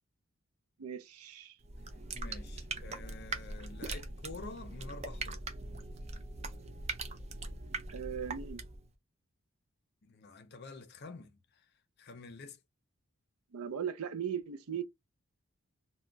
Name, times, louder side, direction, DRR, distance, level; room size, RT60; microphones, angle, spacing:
voice 1, 0.8-1.6 7.9-8.6 13.5-14.8, right 8 dB, 85° right, 0.5 m, -38 dB
sound 1, 1.6-8.9, right 3 dB, 30° right, 0.4 m, -41 dB
voice 2, 2.1-5.4 10.0-11.6 12.0-12.6, left 3 dB, 50° left, 0.5 m, -48 dB
2.2 x 2.1 x 3.7 m
head